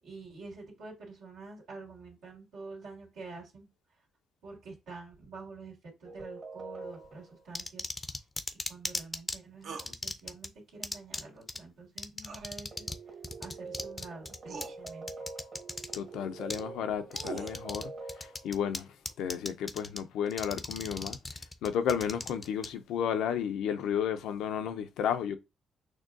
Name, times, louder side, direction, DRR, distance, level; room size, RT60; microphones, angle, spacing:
voice 1, 0.0-3.7 4.4-5.7 6.0-8.2 8.7-13.1 13.4-15.3, right 3 dB, 85° right, 2.2 m, -47 dB
sound 1, 6.0-7.4 12.7-18.7, right 3 dB, 45° right, 1.4 m, -45 dB
sound 2, 7.5-9.4 9.8-10.5 10.8-11.2 11.5-11.6 12.0-13.0 13.2-16.0 16.5-16.6 17.1-17.8 18.1-18.8 19.1-20.0 20.3-22.7, left 3 dB, 25° left, 0.5 m, -36 dB
sound 3, 9.6-9.9 12.2-12.5 13.8-13.9 14.5-14.8 16.7-17.6, right 5 dB, 65° right, 0.7 m, -42 dB
voice 2, 15.9-17.9 18.2-18.9 19.2-21.2 21.6-25.4, left 8 dB, 85° left, 0.5 m, -32 dB
6.2 x 2.2 x 2.5 m
cardioid pair, 90°, 0 cm